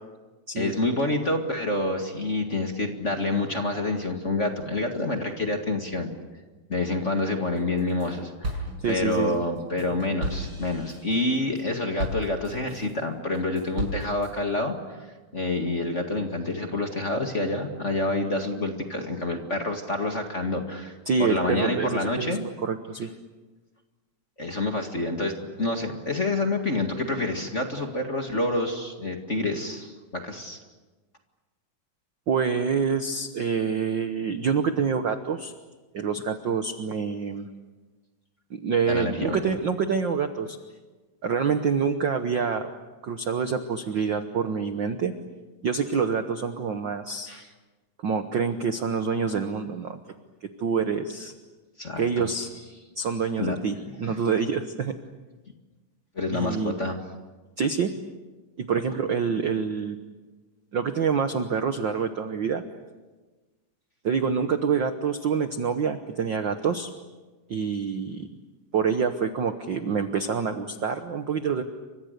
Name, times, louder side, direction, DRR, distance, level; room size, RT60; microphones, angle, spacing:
voice 1, 0.6-6.1 6.7-8.6 8.9-15.0 15.3-22.5 24.4-30.6 38.9-39.4 47.3-47.4 51.8-52.3 53.4-53.6 56.2-57.0, left 2 dB, 25° left, 4 dB, 1.8 m, -28 dB
sound 1, 7.6-8.1 8.4-12.9 13.3-14.3, right 1 dB, 35° right, 7.2 m, -34 dB
voice 2, 8.8-9.4 21.1-23.1 32.3-35.5 35.9-37.5 38.5-40.6 41.2-42.7 43.0-45.1 45.6-47.3 48.0-50.0 50.6-51.3 52.0-52.5 53.0-54.9 56.3-56.7 57.6-57.9 58.6-60.0 60.7-62.6 64.0-66.9 67.5-68.3 68.7-71.6, right 6 dB, 65° right, 8 dB, 1.1 m, -26 dB
30.0 x 25.0 x 6.7 m, 1.2 s
omnidirectional pair, 3.7 m